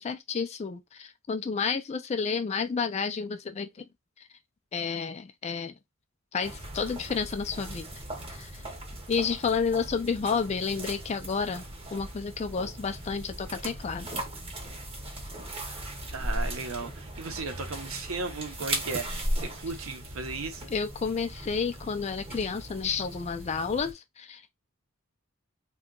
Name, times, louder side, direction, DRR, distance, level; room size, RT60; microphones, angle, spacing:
voice 1, 0.0-3.9 4.7-5.7 6.3-7.9 8.3-8.6 9.1-11.6 11.9-14.2 20.7-24.5, left 5 dB, 30° left, 0.4 m, -31 dB
sound 1, 6.4-23.9, right 1 dB, 25° right, 0.8 m, -38 dB
voice 2, 16.1-20.6, right 4 dB, 75° right, 0.7 m, -36 dB
2.7 x 2.3 x 3.6 m
head